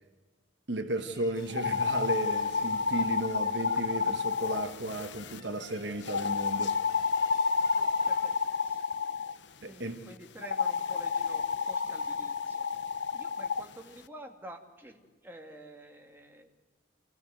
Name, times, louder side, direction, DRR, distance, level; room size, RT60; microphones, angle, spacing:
voice 1, 0.7-6.8 9.6-10.0, right 1 dB, 60° right, 1.4 m, -34 dB
sound 1, 1.0-8.3, left 3 dB, 20° left, 2.9 m, -55 dB
sound 2, 1.5-5.4 6.0-9.3 10.4-13.6, left 5 dB, 60° left, 0.7 m, -30 dB
voice 2, 7.7-8.4 8.6-8.9 9.6-16.5, right 1 dB, 10° right, 2.3 m, -49 dB
25.5 x 17.5 x 7.8 m
head